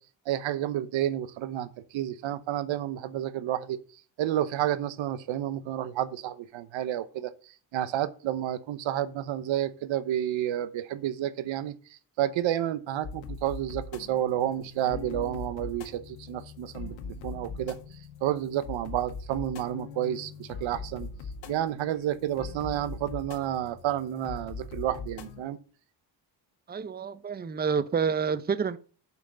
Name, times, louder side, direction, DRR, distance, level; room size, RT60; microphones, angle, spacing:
voice 1, 0.3-3.8 4.2-17.8 18.2-21.1 21.5-25.6, right 12 dB, 85° right, 1.0 m, -30 dB
sound 1, 13.0-25.4, left 4 dB, 80° left, 1.8 m, -41 dB
voice 2, 26.7-28.8, right 6 dB, 20° right, 0.6 m, -28 dB
7.7 x 5.9 x 6.7 m
cardioid pair, 105°, 45 cm